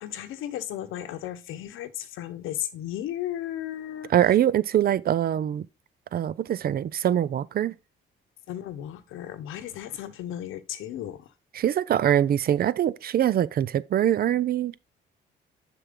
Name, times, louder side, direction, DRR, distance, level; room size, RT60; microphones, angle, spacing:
voice 1, 0.0-4.1 8.5-11.2, left 12 dB, 90° left, 0.9 m, -35 dB
voice 2, 4.1-5.7 6.1-7.7 11.5-14.7, right 10 dB, 50° right, 0.4 m, -23 dB
6.8 x 6.0 x 3.7 m
cardioid pair, 90°, 20 cm